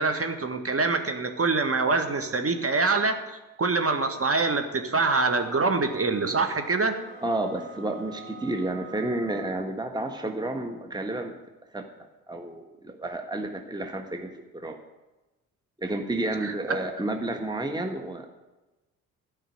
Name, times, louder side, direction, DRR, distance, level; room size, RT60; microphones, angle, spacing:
voice 1, 0.0-7.0 16.4-16.8, right 3 dB, 35° right, 7 dB, 1.9 m, -25 dB
sound 1, 5.0-9.7, right 4 dB, 50° right, 3.2 m, -46 dB
voice 2, 7.2-11.4 11.7-11.9 12.3-14.8 15.8-18.3, right 2 dB, 10° right, 4 dB, 1.6 m, -31 dB
13.5 x 5.9 x 9.4 m, 1.1 s
hypercardioid pair, 45°, 41 cm